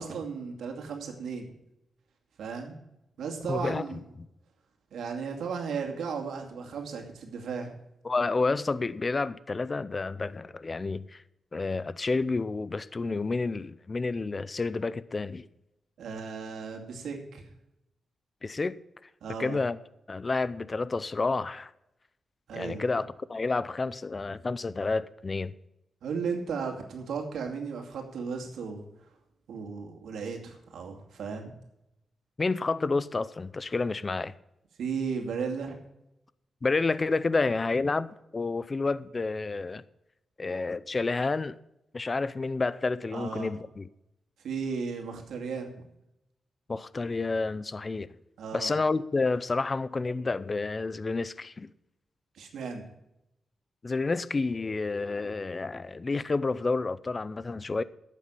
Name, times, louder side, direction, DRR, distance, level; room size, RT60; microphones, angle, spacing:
voice 1, 0.0-1.5 2.4-2.8 3.2-4.0 4.9-7.7 16.0-17.4 19.2-19.6 22.5-22.9 26.0-28.8 29.5-31.5 34.8-35.8 43.1-43.6 44.4-45.7 48.4-48.7 52.3-52.8, right 5 dB, 90° right, 2.4 m, -35 dB
voice 2, 3.5-3.8 4.2-4.3 8.0-11.2 11.5-15.5 18.4-18.8 19.4-19.8 20.1-21.7 22.5-25.5 32.4-34.3 36.6-38.1 38.3-39.8 40.4-41.6 41.9-43.9 46.7-48.1 48.5-51.7 53.8-57.8, left 3 dB, 30° left, 0.5 m, -29 dB
12.0 x 8.4 x 5.7 m
cardioid pair, 110°, 0 cm